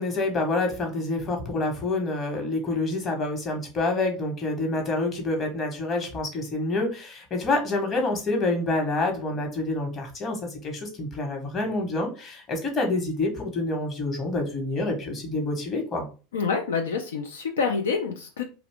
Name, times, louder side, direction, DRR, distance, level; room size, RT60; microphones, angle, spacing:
voice 1, 0.0-16.0, left 2 dB, 35° left, 2 dB, 1.1 m, -27 dB
voice 2, 16.3-18.4, left 5 dB, 85° left, 4 dB, 0.4 m, -27 dB
2.5 x 2.2 x 3.5 m, 0.34 s
hypercardioid pair, 95°, 0 cm